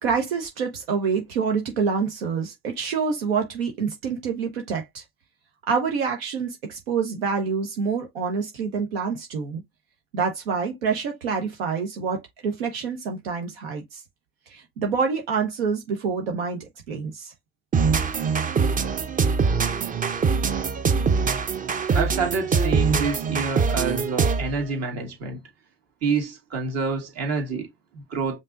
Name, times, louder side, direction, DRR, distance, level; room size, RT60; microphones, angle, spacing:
voice 1, 0.0-5.0 5.7-9.6 10.1-14.0 14.5-17.3, right 5 dB, 80° right, 1.0 m, -27 dB
sound 1, 17.7-24.6, right 5 dB, 25° right, 0.7 m, -23 dB
voice 2, 21.9-25.4 26.0-28.4, right 4 dB, 60° right, 2.0 m, -28 dB
5.3 x 2.7 x 2.5 m
hypercardioid pair, 65°, 29 cm